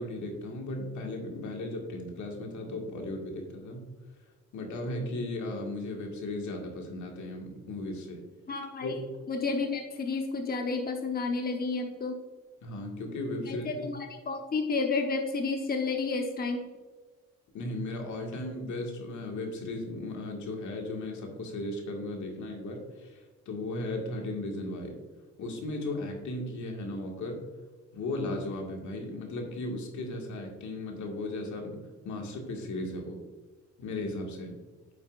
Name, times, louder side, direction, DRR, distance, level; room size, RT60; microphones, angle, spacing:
voice 1, 0.0-3.9 4.5-8.2 8.8-9.0 12.6-13.9 17.5-25.0 25.4-27.4 27.9-31.8 32.1-33.2 33.8-34.5, left 2 dB, 75° left, 1 dB, 1.9 m, -36 dB
voice 2, 8.5-9.0 9.3-12.2 13.4-16.6, left 4 dB, 30° left, 3 dB, 0.9 m, -31 dB
9.4 x 7.1 x 2.5 m, 1.4 s
cardioid pair, 90°, 30 cm